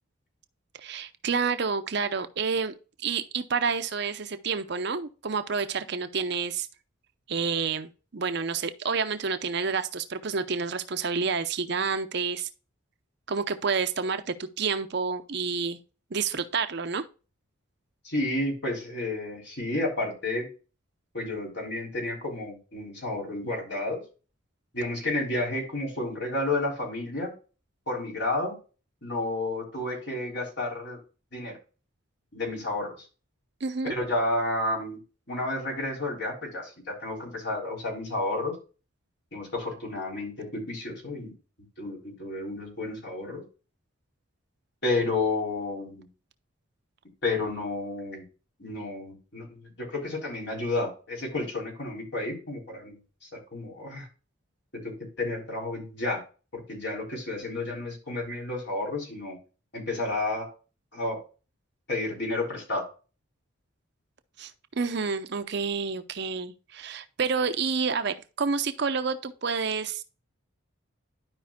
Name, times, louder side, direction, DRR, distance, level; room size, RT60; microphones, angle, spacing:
voice 1, 0.8-2.7 3.0-6.7 7.3-12.5 13.3-15.8 16.1-17.0 33.6-33.9 64.4-64.5 64.8-70.0, right 5 dB, 50° right, 0.6 m, -29 dB
voice 2, 18.0-20.5 21.1-24.0 24.7-27.3 27.9-28.6 29.0-31.0 31.3-31.6 32.3-32.9 33.8-35.0 35.3-38.5 39.3-41.3 41.8-43.4 44.8-46.1 47.2-48.2 48.6-54.1 54.7-56.2 56.5-59.4 59.7-60.5 60.9-61.2 61.9-62.9, left 2 dB, 50° left, 3.5 m, -31 dB
12.0 x 5.1 x 2.2 m
head